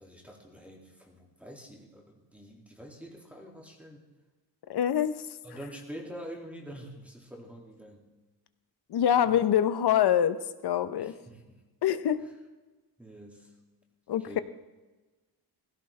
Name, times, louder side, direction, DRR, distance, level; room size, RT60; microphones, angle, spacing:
voice 1, 0.0-4.0 5.4-8.1 9.2-9.4 11.0-11.6 12.2-12.3 13.0-13.5 14.2-14.4, equal, 5° right, 0 dB, 2.2 m, -46 dB
voice 2, 4.7-5.1 8.9-11.1 11.8-12.2 14.1-14.4, left 10 dB, 75° left, 12 dB, 0.8 m, -25 dB
17.0 x 16.0 x 3.3 m, 1.2 s
wide cardioid pair, 135°, 40 cm